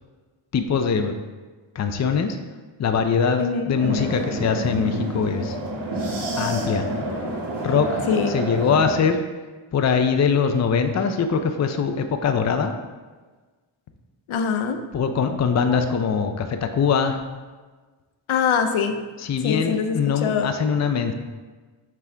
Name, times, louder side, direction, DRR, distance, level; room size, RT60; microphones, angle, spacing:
voice 1, 0.5-1.1 1.8-2.4 2.8-5.6 6.4-6.9 7.6-8.0 8.3-9.2 9.7-12.7 14.9-17.2 19.2-21.1, left 6 dB, 35° left, 7 dB, 0.5 m, -22 dB
voice 2, 3.4-3.8 8.1-8.3 14.3-14.8 18.3-19.0 19.4-20.6, left 6 dB, 75° left, 7 dB, 0.7 m, -23 dB
sound 1, 3.8-8.9, right 1 dB, 55° right, 1.6 m, -28 dB
6.0 x 5.9 x 3.3 m, 1.3 s
wide cardioid pair, 100°, 49 cm